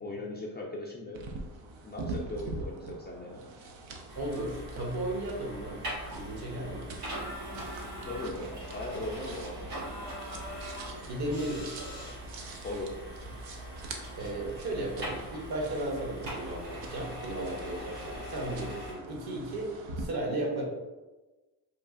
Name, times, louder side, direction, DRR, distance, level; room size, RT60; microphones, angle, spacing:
voice 1, 0.0-1.2 1.8-3.4 8.0-9.9 12.6-13.0, left 2 dB, 20° left, -3 dB, 0.4 m, -38 dB
sound 1, 1.1-20.1, right 3 dB, 65° right, 0.6 m, -44 dB
sound 2, 4.1-18.9, equal, 85° right, 1.3 m, -42 dB
voice 2, 4.2-5.8 6.1-6.9 11.1-12.1 14.2-20.6, right 1 dB, 50° right, -1 dB, 1.0 m, -35 dB
3.0 x 2.3 x 2.5 m, 1.2 s
supercardioid pair, 60°, 50 cm